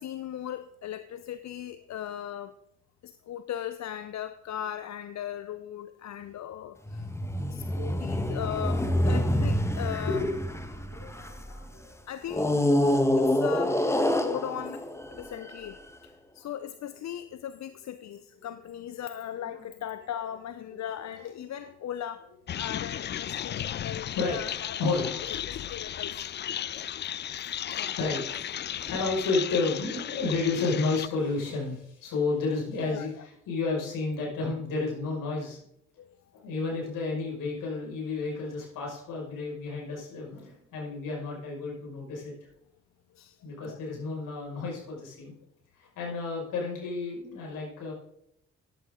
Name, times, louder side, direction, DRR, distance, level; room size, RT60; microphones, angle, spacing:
voice 1, 0.0-2.5 3.0-7.1 7.5-10.2 12.1-12.5 13.2-22.3 22.6-26.2 27.7-28.0 28.7-28.8 32.8-33.3 36.0-36.2 43.1-43.8, left 10 dB, 55° left, 12 dB, 0.8 m, -38 dB
sound 1, 6.9-11.5 12.3-15.7, left 1 dB, 10° left, 1.5 m, -27 dB
voice 2, 10.9-12.0 15.1-15.3 20.7-20.8 21.5-21.7 24.1-25.2 25.6-25.7 27.7-28.4 28.7-35.6 36.3-42.3 43.4-45.3 45.8-47.9, left 3 dB, 70° left, -2 dB, 5.8 m, -32 dB
sound 2, 22.5-31.1, left 10 dB, 35° left, 0.4 m, -35 dB
14.0 x 11.0 x 3.8 m, 0.76 s
hypercardioid pair, 45°, 34 cm